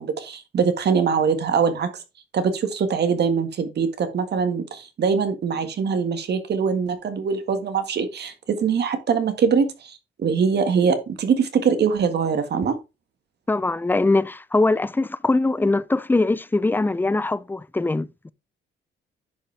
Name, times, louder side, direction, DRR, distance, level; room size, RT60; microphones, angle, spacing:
voice 1, 0.0-2.0 2.3-12.7, right 6 dB, 55° right, 1.7 m, -23 dB
voice 2, 13.5-18.3, left 2 dB, 10° left, 0.5 m, -22 dB
10.0 x 5.2 x 3.4 m
cardioid pair, 90°, 20 cm